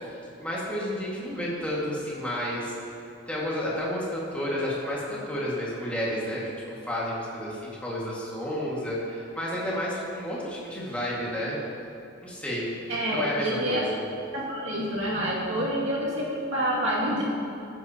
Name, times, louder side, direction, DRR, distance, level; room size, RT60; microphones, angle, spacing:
voice 1, 0.4-2.7 3.3-11.6 12.2-12.8 13.1-13.8, equal, 5° left, -6 dB, 1.9 m, -31 dB
voice 2, 12.9-13.9 14.3-17.2, equal, 65° right, -6 dB, 2.3 m, -27 dB
14.5 x 9.4 x 2.9 m, 2.6 s
head